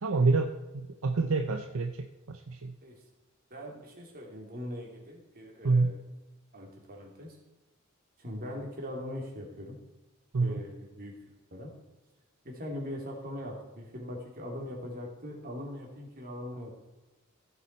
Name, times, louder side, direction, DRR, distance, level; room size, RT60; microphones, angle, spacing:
voice 1, 0.0-2.8 5.6-5.9 10.3-10.5, right 3 dB, 75° right, 6 dB, 0.7 m, -28 dB
voice 2, 3.5-6.0 6.5-7.4 8.2-9.8 10.4-11.7 12.4-16.7, left 1 dB, 45° right, 0 dB, 2.8 m, -41 dB
15.5 x 7.1 x 4.6 m, 1.1 s
head